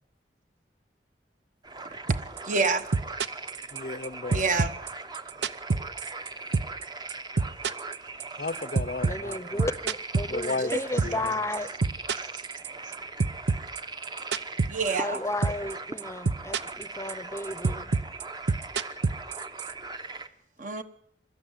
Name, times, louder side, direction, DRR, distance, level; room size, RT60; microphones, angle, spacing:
sound 1, 1.6-20.3, right 3 dB, 25° right, 0.9 m, -40 dB
sound 2, 2.1-2.4 2.6-4.1 4.3-6.3 6.5-6.8 7.1-11.3 11.5-12.9 13.2-15.2 15.4-15.7 16.0-16.8 17.1-19.7, right 4 dB, 80° right, 0.8 m, -26 dB
voice 1, 2.5-2.9 4.3-4.7 10.7-10.8 14.7-15.2 20.6-20.8, right 4 dB, 45° right, 1.3 m, -27 dB
voice 2, 3.7-4.4 8.4-9.5 10.3-10.7 11.0-11.3, left 3 dB, 50° left, 0.7 m, -33 dB
voice 3, 9.0-11.7 14.9-17.9, left 1 dB, 15° left, 0.8 m, -33 dB
23.5 x 13.5 x 9.2 m
head